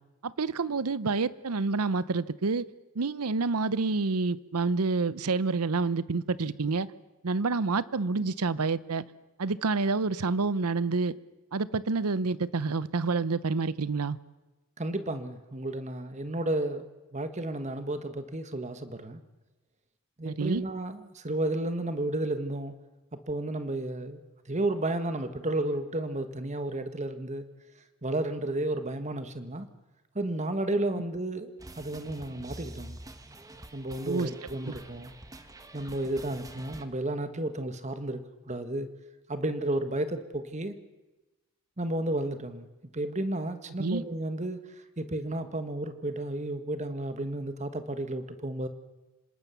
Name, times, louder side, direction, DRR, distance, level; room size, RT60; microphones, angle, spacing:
voice 1, 0.2-2.6 3.0-6.9 7.2-9.0 9.4-11.1 11.5-14.2 20.2-20.6 34.0-34.3 34.7-34.8 43.8-44.0, right 4 dB, 85° right, 0.8 m, -28 dB
voice 2, 14.8-16.8 17.1-19.2 20.2-22.7 23.1-24.2 24.5-27.5 28.0-29.7 30.1-33.0 33.7-35.1 35.7-38.2 38.5-38.9 39.3-40.7 41.8-42.7 42.9-44.6 45.0-48.7, right 1 dB, 30° right, 1.4 m, -32 dB
sound 1, 31.6-36.9, right 1 dB, 15° right, 1.2 m, -46 dB
26.5 x 19.0 x 7.0 m
head